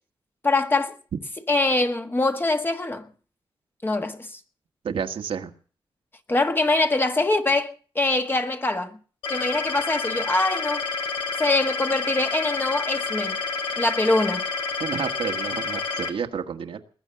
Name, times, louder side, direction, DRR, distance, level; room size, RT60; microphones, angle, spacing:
voice 1, 0.4-1.0 1.5-3.1 3.8-4.4 6.3-9.0 9.3-10.9 11.4-13.4 13.8-14.5, left 2 dB, 25° left, 1.5 m, -23 dB
voice 2, 4.8-5.5 14.8-16.8, right 7 dB, 85° right, 1.6 m, -30 dB
sound 1, 9.2-16.1, left 4 dB, 90° left, 2.5 m, -29 dB
20.5 x 9.1 x 7.0 m
wide cardioid pair, 100°, 9 cm